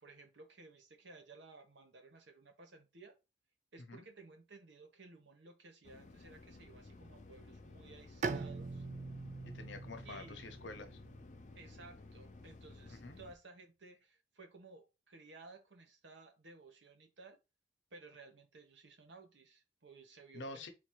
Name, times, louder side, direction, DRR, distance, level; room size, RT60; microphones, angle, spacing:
voice 1, 0.0-3.1 3.7-8.8 10.0-10.4 11.5-17.4 17.9-20.7, right 3 dB, 80° right, 1.1 m, -57 dB
sound 1, 5.8-13.4, left 2 dB, 40° left, 0.5 m, -55 dB
Bowed string instrument, 8.2-11.8, right 4 dB, 40° right, 0.4 m, -43 dB
voice 2, 9.5-11.0 13.0-13.2 20.3-20.7, left 2 dB, 85° left, 0.9 m, -48 dB
4.0 x 2.7 x 4.5 m
head